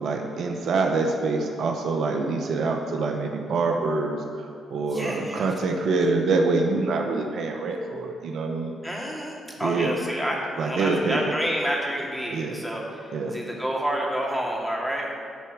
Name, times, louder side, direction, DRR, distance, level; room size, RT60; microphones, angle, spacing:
voice 1, 0.0-8.7 9.6-9.9 10.6-11.3 12.3-12.6 13.1-13.4, right 3 dB, 65° right, 3 dB, 0.9 m, -25 dB
voice 2, 4.9-5.5 8.8-15.2, equal, 5° left, -3 dB, 2.6 m, -29 dB
10.5 x 4.4 x 7.4 m, 2.3 s
supercardioid pair, 50°, 0 cm